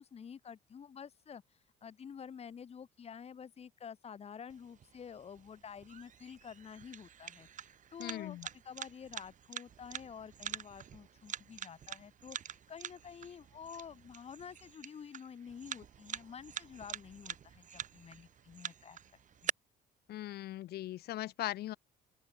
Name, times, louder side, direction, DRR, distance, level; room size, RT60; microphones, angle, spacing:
voice 1, 0.0-1.4 1.8-19.0 19.4-19.5, left 7 dB, 40° left, 2.2 m, -49 dB
sound 1, 4.5-19.5, right 9 dB, 50° right, 4.1 m, -46 dB
voice 2, 8.0-8.5 20.1-21.8, left 15 dB, 70° left, 1.5 m, -39 dB
open air
cardioid pair, 110°, 17 cm